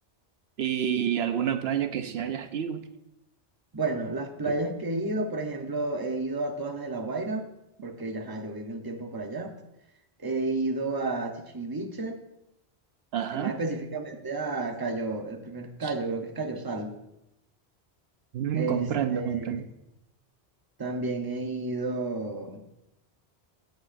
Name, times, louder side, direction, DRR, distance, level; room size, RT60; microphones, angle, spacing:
voice 1, 0.6-2.9 13.1-13.6 15.8-15.9 18.3-19.7, right 9 dB, 70° right, 9 dB, 0.8 m, -29 dB
voice 2, 3.7-7.5 7.8-9.5 10.2-12.2 13.3-16.9 18.5-18.8 19.1-19.6 20.8-22.6, right 2 dB, 20° right, 4 dB, 0.9 m, -31 dB
16.5 x 7.8 x 2.6 m, 0.88 s
omnidirectional pair, 1.1 m